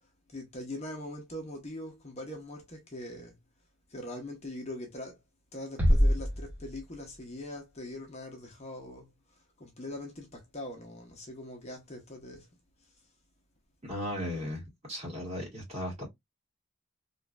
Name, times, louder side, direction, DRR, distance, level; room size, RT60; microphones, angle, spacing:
voice 1, 0.3-3.4 3.9-5.2 5.5-9.1 9.6-12.5, left 1 dB, 35° left, 0.8 m, -42 dB
sound 1, 5.8-7.4, equal, 10° right, 0.8 m, -26 dB
voice 2, 13.8-14.6 14.9-16.1, equal, 35° right, 1.8 m, -36 dB
3.0 x 2.4 x 2.3 m
head